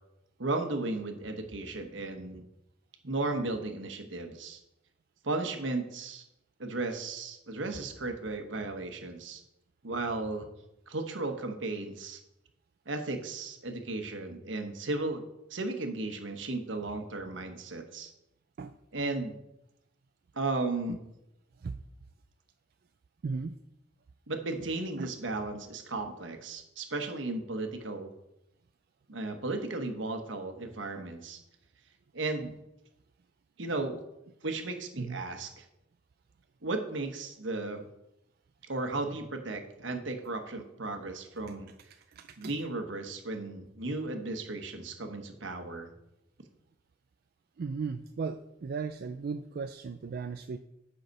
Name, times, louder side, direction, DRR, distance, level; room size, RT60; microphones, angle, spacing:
voice 1, 0.4-2.4 3.0-4.6 5.2-6.2 6.6-9.4 9.8-10.5 10.9-12.2 12.9-18.1 18.9-19.4 20.3-21.0 24.3-28.1 29.1-31.4 32.1-32.5 33.6-34.0 34.4-35.6 36.6-37.9 38.6-41.7 42.4-45.9, right 2 dB, 75° right, 6 dB, 1.1 m, -35 dB
voice 2, 23.2-23.5 25.0-25.1 35.0-35.2 42.1-42.5 47.6-50.6, right 5 dB, 55° right, 8 dB, 0.4 m, -36 dB
8.0 x 5.7 x 5.3 m, 0.89 s
head